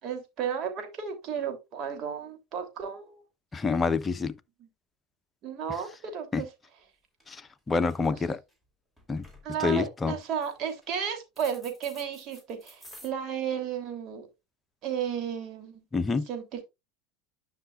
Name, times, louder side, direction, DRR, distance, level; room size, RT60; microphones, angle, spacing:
voice 1, 0.0-3.2 4.6-4.7 5.4-6.5 8.1-8.2 9.4-14.3 14.8-15.8 16.3-16.6, right 8 dB, 50° right, 3.1 m, -33 dB
voice 2, 3.5-4.3 6.3-6.4 7.3-7.4 7.7-8.4 9.1-9.2 9.6-10.1 15.9-16.2, left 4 dB, 20° left, 0.9 m, -27 dB
sound 1, 6.8-6.9 7.2-7.5 7.7-8.5 9.0-9.5 10.2-10.9 11.4-13.1, equal, 10° right, 3.7 m, -51 dB
11.5 x 5.9 x 2.4 m
hypercardioid pair, 80°, 0 cm